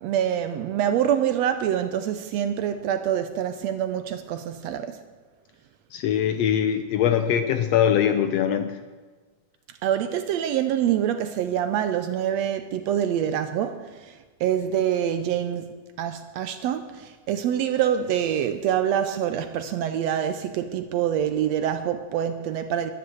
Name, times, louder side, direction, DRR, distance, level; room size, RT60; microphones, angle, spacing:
voice 1, 0.0-5.0 9.8-15.7 16.0-22.9, right 10 dB, 80° right, 1.5 m, -26 dB
voice 2, 5.9-8.8, left 9 dB, 85° left, 1.4 m, -22 dB
12.5 x 10.5 x 7.8 m
omnidirectional pair, 3.6 m